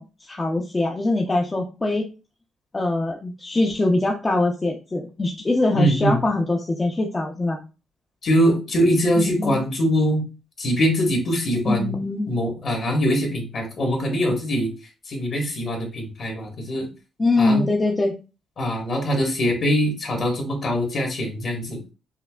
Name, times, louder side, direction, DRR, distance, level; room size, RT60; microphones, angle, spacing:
voice 1, 0.0-2.1 2.7-7.6 9.2-9.6 11.7-12.3 17.2-18.1, left 2 dB, 20° left, 0 dB, 0.6 m, -23 dB
voice 2, 5.7-6.2 8.2-10.2 10.6-12.0 12.3-14.7 15.1-16.9 17.4-17.6 18.6-21.8, equal, 50° left, 2 dB, 1.4 m, -22 dB
5.5 x 2.1 x 2.3 m, 0.31 s
cardioid pair, 90°, 0 cm